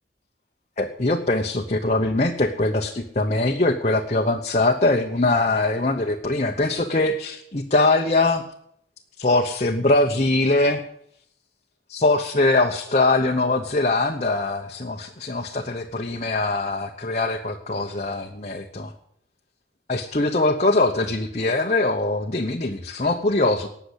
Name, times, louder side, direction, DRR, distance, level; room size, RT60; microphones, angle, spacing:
voice 1, 0.8-8.4 9.2-10.8 11.9-18.9 19.9-23.7, left 2 dB, 40° left, 2 dB, 1.0 m, -22 dB
19.0 x 7.0 x 8.1 m, 0.69 s
head